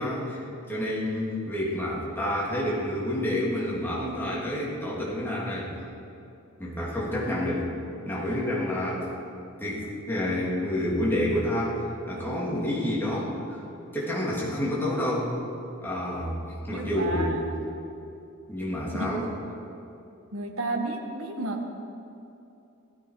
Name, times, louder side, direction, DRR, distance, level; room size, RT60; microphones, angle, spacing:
voice 1, 0.0-5.7 6.6-7.7 8.0-9.1 9.6-11.8 12.1-13.6 13.9-15.3 15.8-16.4 16.6-17.4 18.5-19.3, left 1 dB, 10° left, -6 dB, 3.0 m, -29 dB
voice 2, 16.7-17.4 18.9-19.5 20.3-21.6, right 2 dB, 75° right, 2 dB, 1.6 m, -32 dB
16.5 x 13.0 x 4.9 m, 2.7 s
head